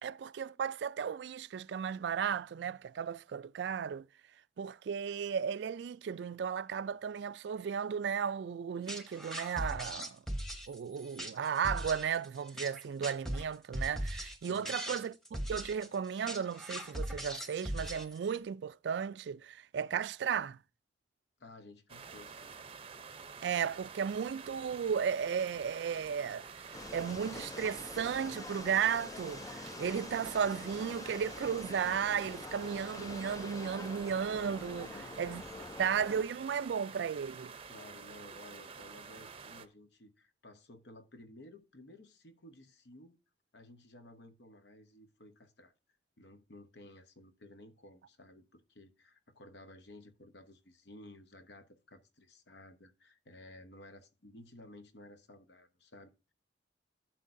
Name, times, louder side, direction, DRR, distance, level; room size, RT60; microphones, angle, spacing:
voice 1, 0.0-4.1 4.6-10.2 10.7-15.1 15.5-20.6 23.4-35.4 35.8-37.5, right 7 dB, 70° right, 0.3 m, -35 dB
sound 1, 8.9-18.4, equal, ahead, 1.1 m, -40 dB
voice 2, 14.5-14.8 21.4-22.6 34.7-35.2 37.7-43.2 43.5-45.7 46.2-56.3, left 1 dB, 65° left, 1.0 m, -55 dB
sound 2, 21.9-39.7, right 5 dB, 30° right, 0.6 m, -49 dB
sound 3, 26.7-36.2, left 3 dB, 20° left, 0.4 m, -46 dB
12.0 x 7.4 x 2.6 m
head